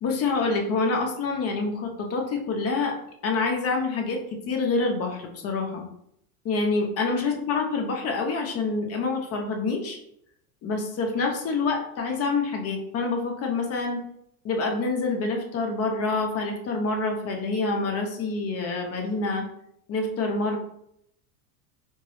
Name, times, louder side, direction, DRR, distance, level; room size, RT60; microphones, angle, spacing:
voice 1, 0.0-2.9 3.2-5.8 6.4-10.0 10.6-14.0 14.4-19.4 19.9-20.6, left 3 dB, 35° left, 2 dB, 0.8 m, -27 dB
4.3 x 2.0 x 3.1 m, 0.73 s
supercardioid pair, 115°, 43 cm